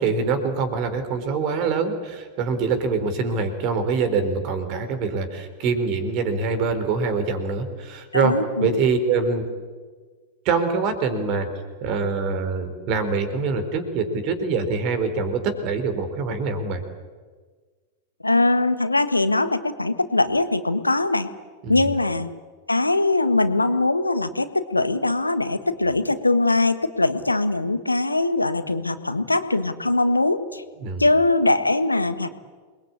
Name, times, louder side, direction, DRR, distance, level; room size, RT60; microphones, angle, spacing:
voice 1, 0.0-8.3 8.6-9.5 10.4-11.5 11.8-16.8 21.6-21.9 30.8-31.1, right 4 dB, 40° right, 9 dB, 4.3 m, -24 dB
voice 2, 8.1-8.8 18.2-21.3 21.7-22.3 22.7-30.6 31.0-32.3, left 2 dB, 85° left, 11 dB, 1.5 m, -21 dB
28.0 x 21.5 x 8.7 m, 1.5 s
figure-of-eight pair, 90°, 0 cm